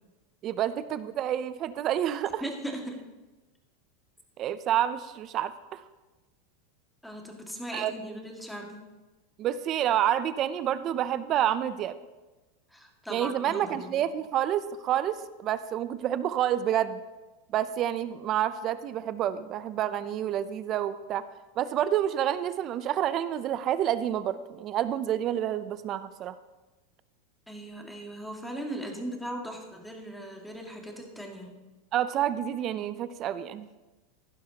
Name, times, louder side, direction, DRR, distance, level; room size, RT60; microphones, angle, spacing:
voice 1, 0.4-2.4 4.4-5.8 7.7-8.1 9.4-11.9 13.1-17.0 17.5-21.2 21.6-26.3 31.9-33.7, right 11 dB, 40° right, 14 dB, 0.5 m, -28 dB
voice 2, 2.4-3.0 7.0-8.8 12.7-13.9 27.5-31.5, right 1 dB, 5° left, 1 dB, 2.0 m, -38 dB
15.5 x 11.5 x 2.9 m, 1.2 s
hypercardioid pair, 115°, 0 cm